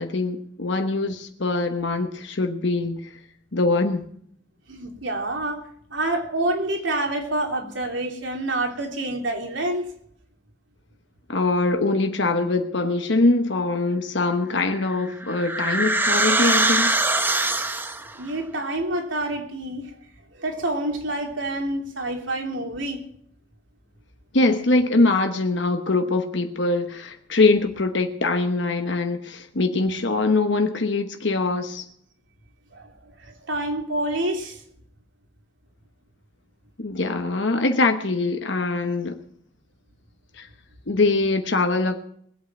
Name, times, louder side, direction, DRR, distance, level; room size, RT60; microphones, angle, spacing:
voice 1, 0.0-3.1 3.5-4.0 11.3-16.9 24.3-31.8 36.8-39.2 40.4-40.5 40.9-42.0, left 3 dB, 70° left, 1.1 m, -23 dB
voice 2, 4.7-5.6 5.9-9.8 18.2-19.9 20.3-23.0 32.7-34.6, right 1 dB, 75° right, 3.1 m, -27 dB
sound 1, 14.7-18.1, right 2 dB, 10° right, 0.8 m, -22 dB
21.5 x 8.5 x 6.0 m
head